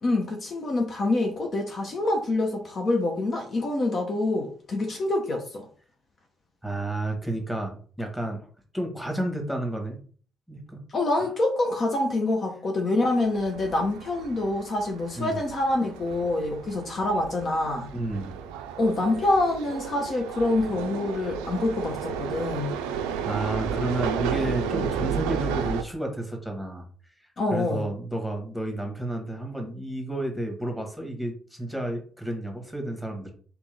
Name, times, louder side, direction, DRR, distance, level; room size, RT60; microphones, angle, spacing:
voice 1, 0.0-5.7 10.9-17.9 18.8-22.7 27.4-27.9, left 2 dB, 45° left, 2 dB, 0.8 m, -26 dB
voice 2, 6.6-8.5 8.7-10.0 10.5-10.8 11.2-11.3 15.2-15.4 17.9-18.3 23.2-26.9 27.5-33.3, right 1 dB, ahead, 3 dB, 1.5 m, -31 dB
sound 1, 13.2-25.8, right 7 dB, 75° right, 0.4 m, -33 dB
3.5 x 3.0 x 3.5 m, 0.43 s
figure-of-eight pair, 45°, 0 cm